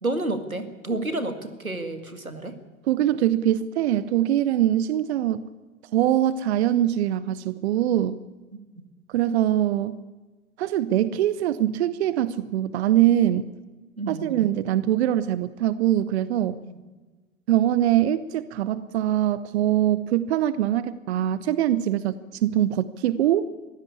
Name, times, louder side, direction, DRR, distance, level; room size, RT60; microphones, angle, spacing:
voice 1, 0.0-2.6 14.0-14.3 16.6-16.7, right 2 dB, 90° right, 9 dB, 2.1 m, -30 dB
voice 2, 2.9-5.5 5.9-8.2 9.1-10.0 10.6-13.5 14.1-16.6 17.5-23.5, right 12 dB, 50° right, 17 dB, 0.8 m, -23 dB
22.0 x 16.0 x 8.5 m, 1.3 s
figure-of-eight pair, 95°, 41 cm